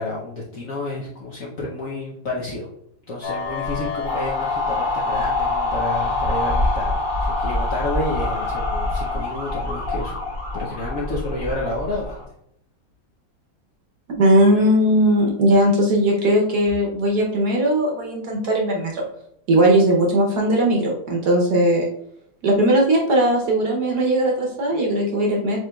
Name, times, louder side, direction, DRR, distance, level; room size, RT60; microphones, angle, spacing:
voice 1, 0.0-2.7 3.1-10.2 10.5-12.2, left 2 dB, 65° left, -5 dB, 0.8 m, -30 dB
sound 1, 3.2-12.2, left 2 dB, 35° left, 0.9 m, -25 dB
voice 2, 14.2-19.0 19.5-21.9 22.4-25.6, right 1 dB, 60° right, -1 dB, 1.2 m, -18 dB
7.5 x 3.0 x 2.3 m, 0.74 s
omnidirectional pair, 2.2 m